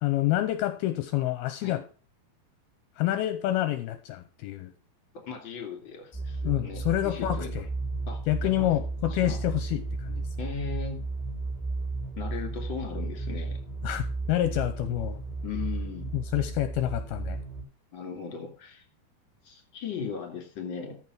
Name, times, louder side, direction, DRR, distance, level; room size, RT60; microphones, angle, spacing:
voice 1, 0.0-1.8 3.0-4.7 6.4-7.7 8.3-10.3 13.8-15.2 16.1-17.4, left 14 dB, 80° left, 10 dB, 2.6 m, -28 dB
voice 2, 5.2-7.5 8.1-8.7 9.1-9.4 10.4-11.0 12.2-13.6 15.4-16.1 17.9-18.8 19.4-21.0, left 6 dB, 35° left, 4 dB, 2.8 m, -38 dB
sound 1, 6.1-17.6, right 3 dB, ahead, 5.8 m, -34 dB
13.5 x 5.6 x 6.1 m, 0.37 s
omnidirectional pair, 4.7 m